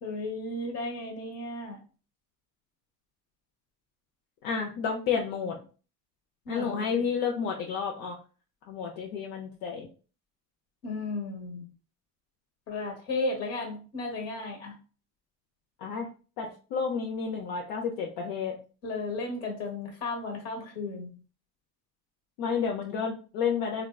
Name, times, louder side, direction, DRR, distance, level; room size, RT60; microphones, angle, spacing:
voice 1, 0.0-1.8 6.4-7.1 10.8-11.6 12.7-14.7 18.8-21.1, left 2 dB, 45° left, 1.2 m, -34 dB
voice 2, 4.4-5.6 6.5-8.2 8.7-9.9 15.8-16.1 16.4-18.6 22.4-23.8, left 6 dB, 70° left, 0.6 m, -31 dB
3.6 x 2.2 x 2.3 m
cardioid pair, 145°, 35 cm